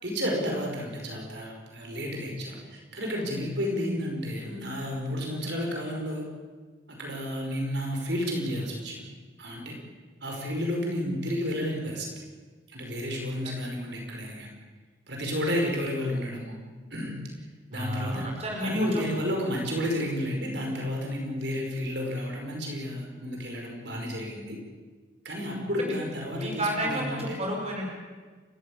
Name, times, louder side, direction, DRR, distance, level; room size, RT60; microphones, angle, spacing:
voice 1, 0.0-6.3 6.9-9.1 9.4-9.8 10.2-12.1 12.7-14.5 15.1-16.5 16.9-17.2 17.7-18.3 18.6-24.6 25.2-27.4, equal, 60° right, 1 dB, 5.4 m, -31 dB
voice 2, 17.7-19.0 25.8-25.9 26.4-27.9, right 1 dB, 35° right, -1 dB, 5.0 m, -31 dB
29.5 x 15.0 x 8.7 m, 1.4 s
head